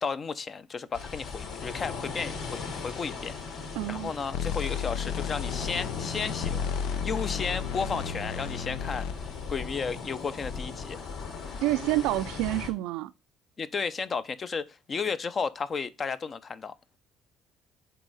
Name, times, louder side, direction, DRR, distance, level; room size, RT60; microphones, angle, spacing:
voice 1, 0.0-3.3 3.6-6.6 7.0-11.0 13.6-17.0, left 5 dB, 30° left, 0.7 m, -33 dB
sound 1, 0.9-12.7, left 5 dB, 65° left, 3.5 m, -38 dB
voice 2, 3.8-4.1 11.6-13.1, right 17 dB, 90° right, 0.4 m, -28 dB
sound 2, 4.3-9.1, left 7 dB, 85° left, 0.7 m, -33 dB
8.4 x 3.6 x 5.5 m
cardioid pair, 130°, 0 cm